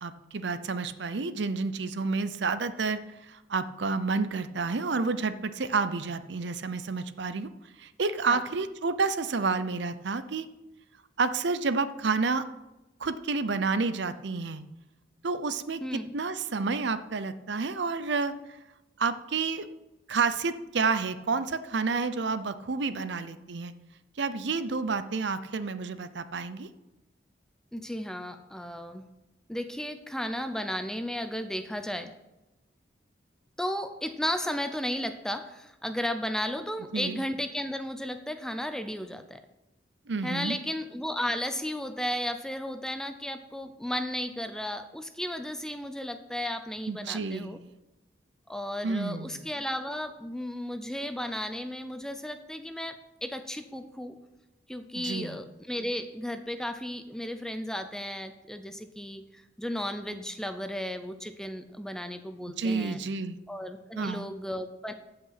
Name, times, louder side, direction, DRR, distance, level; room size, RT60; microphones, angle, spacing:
voice 1, 0.0-7.5 7.8-10.5 11.2-12.4 13.0-14.6 15.2-18.6 19.0-19.7 20.1-23.7 24.2-26.7 36.9-37.2 40.1-40.6 46.9-47.7 48.8-49.4 54.9-55.4 62.6-63.4 64.0-64.3, right 4 dB, 70° right, 12 dB, 0.6 m, -30 dB
voice 2, 15.8-16.1 27.7-29.1 29.5-32.1 33.6-39.4 40.2-47.6 48.5-54.2 54.7-63.0 63.5-64.9, equal, 5° left, 8 dB, 0.6 m, -34 dB
15.5 x 5.7 x 5.7 m, 0.98 s
head